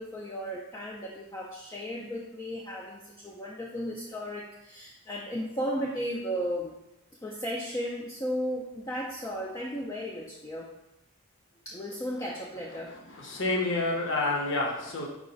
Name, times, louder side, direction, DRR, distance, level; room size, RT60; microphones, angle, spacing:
voice 1, 0.0-6.7 7.2-10.7 11.7-13.0, equal, 15° left, -3 dB, 0.3 m, -35 dB
voice 2, 13.1-15.1, left 2 dB, 55° left, -1 dB, 0.7 m, -28 dB
4.8 x 2.4 x 3.8 m, 0.91 s
head